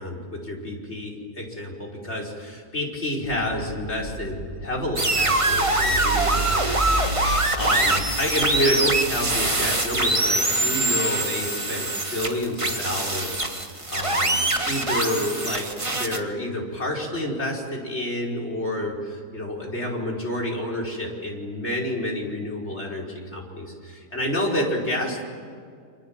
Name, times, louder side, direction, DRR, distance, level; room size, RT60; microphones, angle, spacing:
voice 1, 0.0-25.2, left 1 dB, 40° left, 0 dB, 5.6 m, -29 dB
sound 1, 3.2-9.8, right 3 dB, 70° right, 2.5 m, -33 dB
sound 2, 5.0-16.2, right 2 dB, 20° right, 1.8 m, -24 dB
29.5 x 26.5 x 7.6 m, 2.2 s
omnidirectional pair, 1.7 m